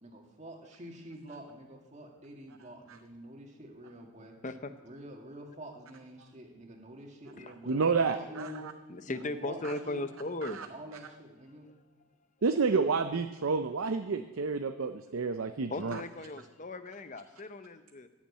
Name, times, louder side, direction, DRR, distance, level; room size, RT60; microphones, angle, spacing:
voice 1, 0.0-4.3 4.8-8.7 9.1-10.0 10.7-11.7, right 1 dB, 35° right, 2.1 m, -47 dB
voice 2, 7.7-8.7 9.6-9.7 10.4-10.7 12.4-16.0, right 4 dB, 75° right, 0.6 m, -30 dB
voice 3, 8.9-10.6 11.6-11.7 15.7-18.1, left 2 dB, 35° left, 0.8 m, -37 dB
15.0 x 7.2 x 8.6 m
head